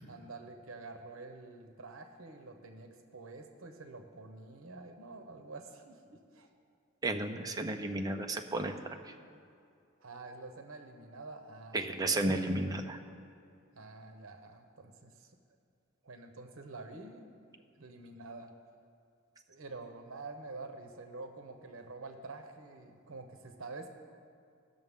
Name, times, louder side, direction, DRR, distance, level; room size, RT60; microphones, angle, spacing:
voice 1, 0.1-6.5 10.0-12.3 13.7-15.4 16.0-17.3 17.8-18.5 19.5-24.0, right 3 dB, 85° right, 5 dB, 0.9 m, -48 dB
voice 2, 7.0-8.7 9.0-9.1 11.7-13.0, right 2 dB, 20° right, 4 dB, 0.7 m, -33 dB
19.0 x 6.6 x 3.7 m, 2.5 s
head